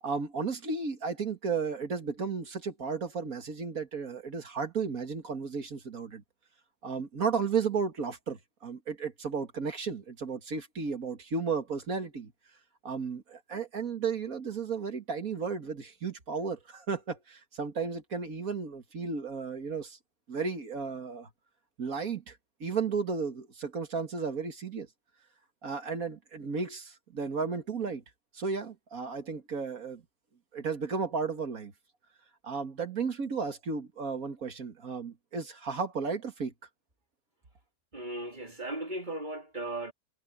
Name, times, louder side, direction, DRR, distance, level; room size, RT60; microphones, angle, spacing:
voice 1, 0.0-6.2 6.8-12.3 12.8-20.0 20.3-21.3 21.8-24.9 25.6-28.0 28.3-30.0 30.5-31.7 32.4-36.5, right 5 dB, 50° right, 2.2 m, -34 dB
voice 2, 37.9-39.9, right 1 dB, 25° right, 3.5 m, -37 dB
omnidirectional pair, 2.0 m